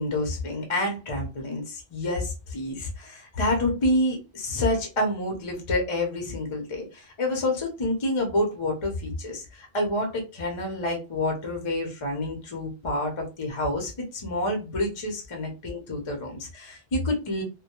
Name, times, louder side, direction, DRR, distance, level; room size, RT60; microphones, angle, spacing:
voice 1, 0.0-17.4, left 1 dB, 35° left, 2 dB, 0.6 m, -28 dB
2.2 x 2.1 x 2.9 m, 0.29 s
omnidirectional pair, 1.1 m